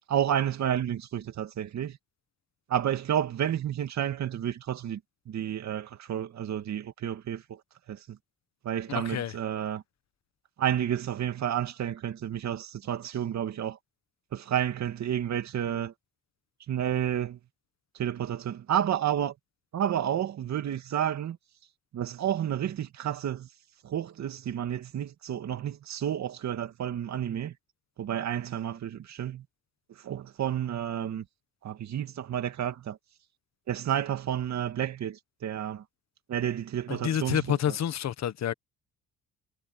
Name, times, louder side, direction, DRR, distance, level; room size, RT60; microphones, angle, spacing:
voice 1, 0.1-2.0 2.7-5.0 5.3-7.4 7.9-8.0 8.6-9.8 10.6-13.8 14.3-15.9 16.7-17.4 18.0-19.3 19.7-21.4 21.9-23.5 23.8-27.5 28.0-29.4 30.0-31.2 31.6-33.0 33.7-35.8 36.3-37.8, right 10 dB, 65° right, 2.5 m, -30 dB
voice 2, 8.9-9.3 36.9-38.5, left 10 dB, 60° left, 1.4 m, -29 dB
cardioid pair, 90°, 30 cm